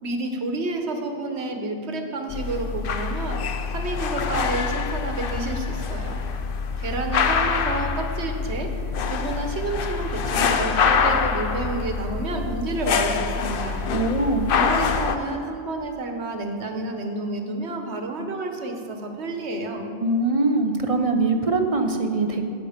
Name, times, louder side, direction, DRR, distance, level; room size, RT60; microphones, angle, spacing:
voice 1, 0.0-3.4 3.7-6.2 6.8-8.7 9.1-13.8 14.5-19.9, right 2 dB, 80° right, 4 dB, 1.4 m, -30 dB
sound 1, 2.3-15.2, left 5 dB, 60° left, 0.8 m, -25 dB
voice 2, 13.9-14.5 20.0-22.4, right 2 dB, 35° right, 5 dB, 0.8 m, -22 dB
17.5 x 6.1 x 5.1 m, 2.5 s
omnidirectional pair, 1.1 m